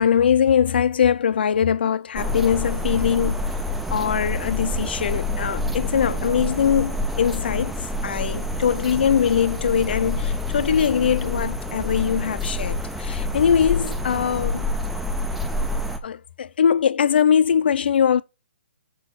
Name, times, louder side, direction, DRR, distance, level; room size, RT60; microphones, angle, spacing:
voice 1, 0.0-3.6 3.9-14.6 16.0-18.2, left 8 dB, 60° left, 0.5 m, -21 dB
sound 1, 2.2-16.0, left 2 dB, ahead, 0.3 m, -27 dB
6.2 x 4.5 x 4.0 m
hypercardioid pair, 170°, 6 cm